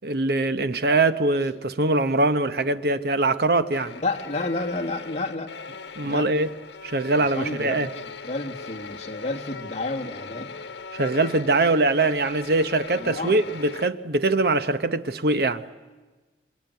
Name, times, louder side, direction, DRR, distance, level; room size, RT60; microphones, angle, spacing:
voice 1, 0.0-4.0 6.0-6.5 6.8-7.9 10.9-15.6, right 2 dB, 60° right, 0.9 m, -22 dB
sound 1, 3.7-13.9, left 4 dB, 80° left, 1.2 m, -39 dB
voice 2, 4.0-5.5 6.0-6.3 7.2-10.6 12.9-13.5, left 2 dB, 35° left, 1.9 m, -31 dB
26.0 x 23.5 x 9.3 m
head